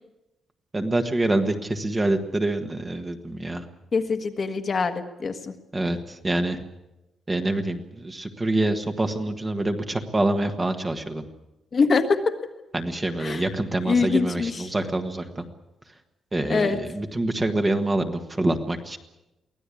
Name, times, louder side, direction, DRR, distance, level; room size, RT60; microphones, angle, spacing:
voice 1, 0.7-3.6 5.7-6.6 7.3-11.2 12.7-15.4 16.3-19.0, right 2 dB, 15° right, 6 dB, 1.5 m, -26 dB
voice 2, 3.9-5.5 11.7-12.3 13.2-13.4 13.9-14.6 16.5-16.8, left 4 dB, 35° left, 6 dB, 1.5 m, -23 dB
23.5 x 17.0 x 8.4 m, 0.96 s
wide cardioid pair, 175°, 0 cm